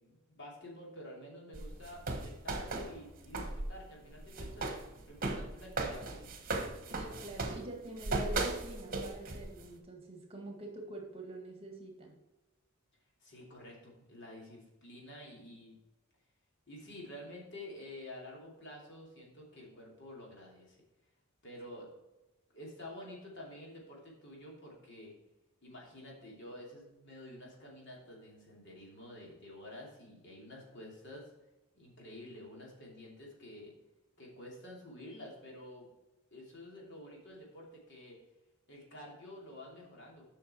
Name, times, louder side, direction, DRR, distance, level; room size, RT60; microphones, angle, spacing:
voice 1, 0.0-4.7 5.1-6.4 13.2-15.8 16.7-20.8 21.4-21.9 22.5-25.1 25.6-31.2 31.7-33.7 34.2-35.9 36.3-38.2 38.7-40.3, left 1 dB, 60° left, -3 dB, 2.9 m, -49 dB
sound 1, 1.5-3.7 4.0-9.7, right 2 dB, 45° right, 1.3 m, -37 dB
voice 2, 6.9-12.2, right 2 dB, 30° right, 1 dB, 1.9 m, -46 dB
8.2 x 5.7 x 4.4 m, 1.1 s
head